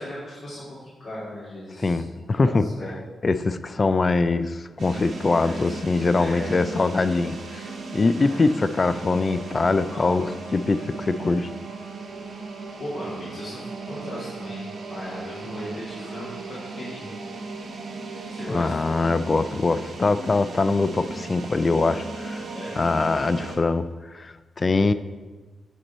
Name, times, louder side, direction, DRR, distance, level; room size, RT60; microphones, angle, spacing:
voice 1, 0.0-2.9 5.4-5.7 6.1-6.5 8.1-8.4 9.9-10.1 12.8-17.1 18.3-18.9 22.5-22.7, equal, 70° left, -10 dB, 2.4 m, -37 dB
voice 2, 1.8-2.7 3.2-11.5 18.5-22.5 22.8-23.9 24.1-24.9, left 3 dB, 30° left, 13 dB, 0.3 m, -23 dB
sound 1, 4.8-23.6, right 3 dB, 65° right, 1.5 m, -37 dB
9.2 x 4.5 x 4.3 m, 1.3 s
cardioid pair, 115°, 0 cm